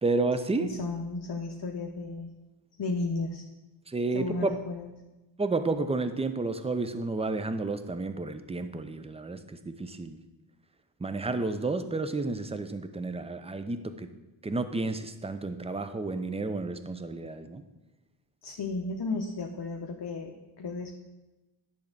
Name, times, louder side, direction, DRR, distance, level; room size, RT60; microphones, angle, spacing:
voice 1, 0.0-0.7 3.9-4.6 5.4-10.2 11.0-14.1 14.4-17.7, right 3 dB, 15° right, 10 dB, 0.5 m, -31 dB
voice 2, 0.6-2.3 2.8-3.5 4.1-4.9 18.4-20.9, left 3 dB, 55° left, 2 dB, 0.9 m, -34 dB
10.5 x 3.5 x 6.6 m, 1.0 s
wide cardioid pair, 90°, 46 cm